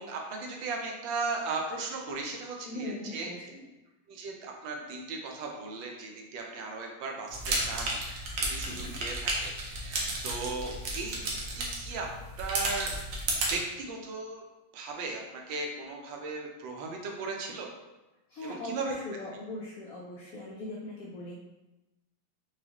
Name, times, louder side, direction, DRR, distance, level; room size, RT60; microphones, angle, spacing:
voice 1, 0.0-3.3 4.1-12.1 12.4-12.9 13.5-14.4 14.7-17.7 18.4-18.9, right 3 dB, 80° right, 1 dB, 1.4 m, -37 dB
voice 2, 2.6-3.6 8.6-9.0 18.3-21.4, left 1 dB, 90° left, -3 dB, 0.7 m, -40 dB
sound 1, 7.3-13.5, right 2 dB, 65° right, 1.1 m, -33 dB
4.6 x 2.4 x 2.8 m, 1.0 s
omnidirectional pair, 2.1 m